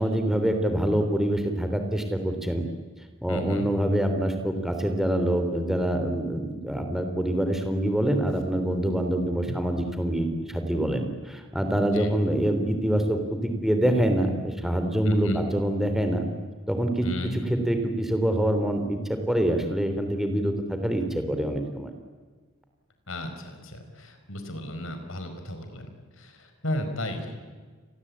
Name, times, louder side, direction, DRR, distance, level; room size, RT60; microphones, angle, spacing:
voice 1, 0.0-2.6 3.2-16.3 16.7-17.1 17.5-21.9, right 1 dB, ahead, 6 dB, 3.2 m, -25 dB
voice 2, 3.3-3.7 9.4-9.6 11.8-12.1 15.0-15.4 17.0-17.4 23.1-25.9 26.2-27.3, left 1 dB, 70° left, 6 dB, 5.0 m, -33 dB
30.0 x 22.5 x 8.7 m, 1.4 s
head